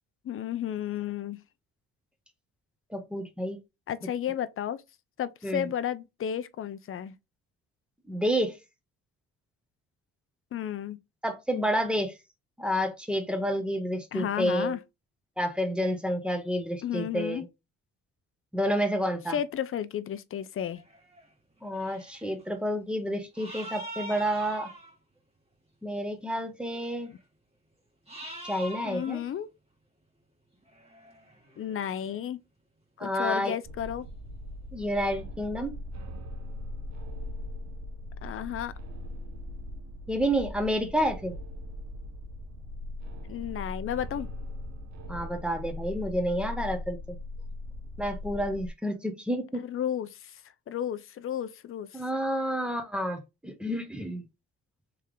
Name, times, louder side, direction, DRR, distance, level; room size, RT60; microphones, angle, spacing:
voice 1, 0.2-1.4 3.9-4.8 5.2-7.2 10.5-11.0 14.1-14.8 16.8-17.4 19.3-20.8 28.8-29.5 31.6-32.4 33.0-34.1 38.2-38.7 43.3-44.3 49.6-50.4 50.7-52.0, left 10 dB, 45° left, 0.5 m, -33 dB
voice 2, 2.9-3.6 5.4-5.7 8.1-8.6 11.2-12.1 12.6-14.7 15.4-17.4 18.5-19.4 21.6-24.7 25.8-27.1 28.4-29.2 33.0-33.5 34.7-35.7 40.1-41.3 45.1-47.2 48.0-49.6 51.9-54.2, equal, 5° right, 1.2 m, -29 dB
sound 1, 20.7-21.3 21.6-22.4 23.3-24.9 26.7-27.2 28.1-29.4 30.5-32.2, right 1 dB, 20° right, 1.9 m, -44 dB
sound 2, 33.6-48.7, left 1 dB, 65° right, 0.9 m, -40 dB
3.4 x 3.2 x 3.7 m
cardioid pair, 90°, 30 cm